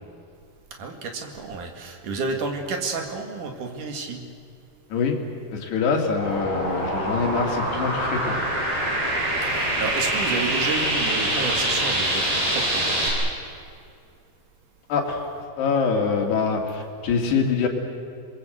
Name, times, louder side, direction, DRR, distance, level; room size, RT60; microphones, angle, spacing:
voice 1, 0.8-4.3 9.4-13.0, right 3 dB, 50° right, 4 dB, 3.3 m, -31 dB
voice 2, 5.5-8.4 14.9-15.3 15.6-17.7, left 5 dB, 70° left, 2 dB, 4.5 m, -24 dB
sound 1, 6.2-13.1, right 1 dB, 65° right, 9.9 m, -25 dB
28.0 x 22.0 x 7.9 m, 2.3 s
omnidirectional pair, 5.0 m